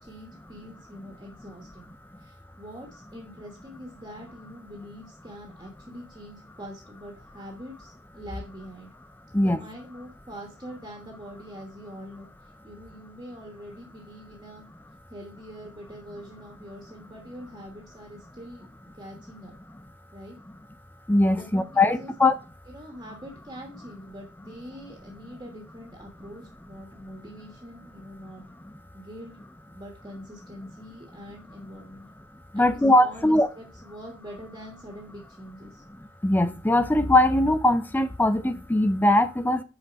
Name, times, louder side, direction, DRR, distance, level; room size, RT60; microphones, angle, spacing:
voice 1, 0.0-1.9 2.2-8.9 9.4-12.3 12.6-14.6 15.1-18.7 19.0-19.5 20.1-20.3 21.3-22.1 22.7-28.4 28.9-29.4 29.7-32.1 32.5-35.8, equal, 25° right, 1.3 m, -44 dB
voice 2, 21.1-22.3 32.5-33.5 36.2-39.6, left 1 dB, 10° left, 0.4 m, -21 dB
5.7 x 4.1 x 5.0 m
head